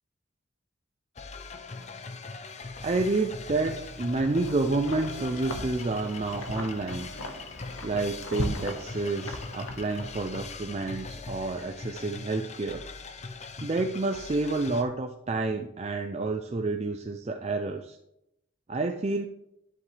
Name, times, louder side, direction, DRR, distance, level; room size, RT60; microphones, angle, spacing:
sound 1, 1.2-14.8, left 4 dB, 35° left, 0.6 m, -41 dB
voice 1, 2.8-7.1 7.8-12.8 13.6-18.0 18.7-19.3, right 3 dB, 30° right, 5 dB, 0.4 m, -29 dB
Wind, 3.8-10.3, left 1 dB, 90° left, 1.2 m, -39 dB
11.0 x 7.6 x 3.2 m, 0.82 s
head